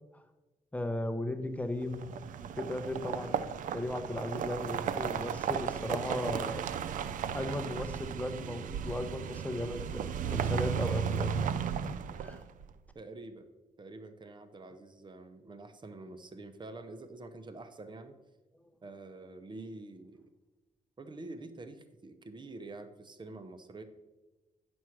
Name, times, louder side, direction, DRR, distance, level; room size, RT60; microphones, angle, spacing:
voice 1, 0.7-2.0 2.6-3.4 3.7-6.7 7.3-10.0 10.3-11.9 12.2-12.4, left 1 dB, 10° left, 7 dB, 0.8 m, -36 dB
sound 1, 1.8-12.6, right 7 dB, 75° right, 0.5 m, -35 dB
voice 2, 12.9-13.5 13.8-18.1 18.8-20.3 21.0-23.8, right 2 dB, 35° right, 9 dB, 0.9 m, -47 dB
9.8 x 6.2 x 4.7 m, 1.1 s
cardioid pair, 95°, 14 cm